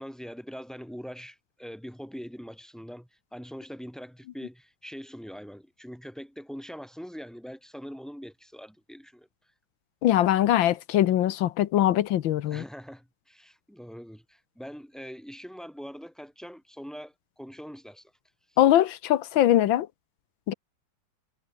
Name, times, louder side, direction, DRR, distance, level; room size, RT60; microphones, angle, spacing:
voice 1, 0.0-9.3 12.5-18.1, equal, ahead, 7.7 m, -43 dB
voice 2, 10.0-12.6 18.6-19.9 20.5-20.6, left 12 dB, 90° left, 1.7 m, -22 dB
omnidirectional pair, 2.0 m